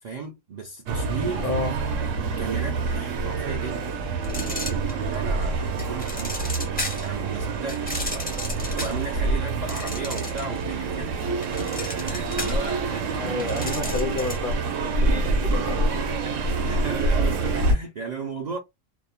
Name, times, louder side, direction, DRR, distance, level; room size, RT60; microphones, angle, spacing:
voice 1, 0.0-1.5 2.4-4.0 4.3-6.4 7.0-8.3 8.8-11.2 12.0-13.7 15.9-18.6, right 4 dB, 65° right, 0.4 m, -35 dB
sound 1, 0.9-17.7, right 3 dB, 85° right, 0.9 m, -26 dB
voice 2, 1.4-1.7 13.1-15.8, left 3 dB, 55° left, 0.7 m, -30 dB
sound 2, 4.2-5.3 5.8-7.1 7.7-10.6 10.9-14.5, left 2 dB, 15° left, 0.3 m, -34 dB
2.4 x 2.0 x 2.8 m
omnidirectional pair, 1.3 m